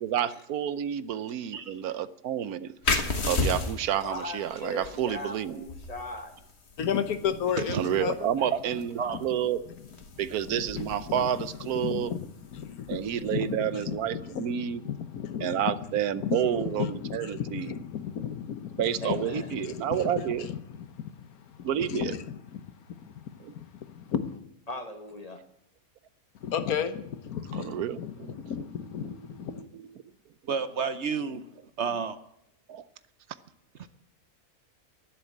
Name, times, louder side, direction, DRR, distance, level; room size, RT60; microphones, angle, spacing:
voice 1, 0.0-2.7 3.3-5.6 7.7-9.6 10.2-12.1 12.9-14.8 15.4-17.7 18.8-20.5 21.6-22.1 23.4-23.5 27.5-28.5 29.6-29.7 32.7-32.8, right 10 dB, 85° right, 15 dB, 1.3 m, -30 dB
sound 1, 2.8-14.1, left 3 dB, 45° left, 1.7 m, -36 dB
voice 2, 4.0-6.3 8.4-8.5 19.0-19.5 24.7-25.4, left 2 dB, 25° left, 6 dB, 1.5 m, -38 dB
voice 3, 6.8-8.3 9.1-9.2 10.5-11.5 11.7-15.7 16.1-22.7 23.0-24.4 26.4-29.6, left 8 dB, 80° left, 11 dB, 1.5 m, -34 dB
voice 4, 30.5-31.4 31.8-32.2 33.8-33.9, right 6 dB, 55° right, 12 dB, 1.0 m, -30 dB
11.5 x 11.0 x 8.6 m, 0.79 s
omnidirectional pair, 1.5 m